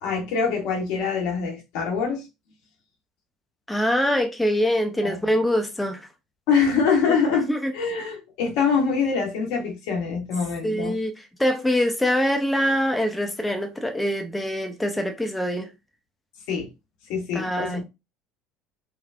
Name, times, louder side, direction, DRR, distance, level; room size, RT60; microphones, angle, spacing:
voice 1, 0.0-2.3 5.0-5.2 6.5-7.5 7.7-11.0 16.5-16.7 17.1-17.8, left 5 dB, 65° left, 0.8 m, -24 dB
voice 2, 3.7-6.0 7.5-7.7 10.6-11.1 11.4-15.7 17.3-17.8, equal, 10° left, 0.7 m, -24 dB
3.2 x 2.2 x 2.4 m
hypercardioid pair, 70°, 0 cm